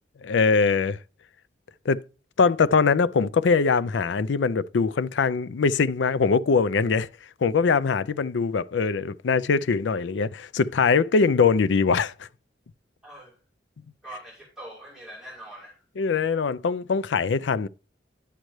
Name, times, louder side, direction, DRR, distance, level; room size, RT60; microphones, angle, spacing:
voice 1, 0.2-1.0 1.9-2.0 2.4-7.1 7.4-12.3 16.0-17.7, left 5 dB, 70° left, 0.4 m, -22 dB
voice 2, 13.0-13.4 14.0-15.8, right 1 dB, 5° right, 2.3 m, -43 dB
10.0 x 6.4 x 3.1 m
head